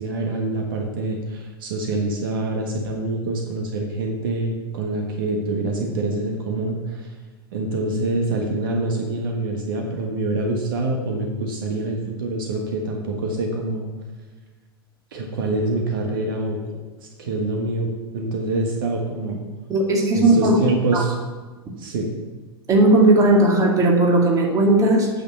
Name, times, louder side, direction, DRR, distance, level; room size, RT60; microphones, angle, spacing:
voice 1, 0.0-7.1 7.5-13.8 15.1-17.9 18.1-19.4 20.1-21.1 21.8-22.2, right 2 dB, 60° right, 1 dB, 1.5 m, -25 dB
voice 2, 19.7-20.6 20.9-21.0 22.7-25.1, right 2 dB, 25° right, 1 dB, 2.2 m, -16 dB
8.7 x 6.5 x 7.0 m, 1.3 s
figure-of-eight pair, 85°, 13 cm